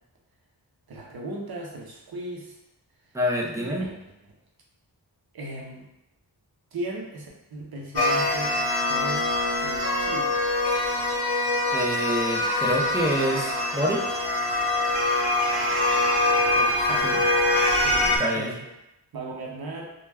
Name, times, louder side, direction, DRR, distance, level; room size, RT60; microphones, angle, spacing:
voice 1, 0.9-2.6 3.5-3.9 5.3-5.9 6.7-9.3 9.6-10.4 16.5-17.3 17.8-18.7 19.1-19.9, right 1 dB, 60° right, -2 dB, 0.7 m, -37 dB
voice 2, 3.1-3.9 11.7-14.2 17.0-17.2 18.2-18.6, equal, 10° right, -2 dB, 0.4 m, -27 dB
sound 1, 8.0-18.2, left 2 dB, 75° left, 0.8 m, -24 dB
2.2 x 2.2 x 3.3 m, 0.85 s
wide cardioid pair, 115°, 41 cm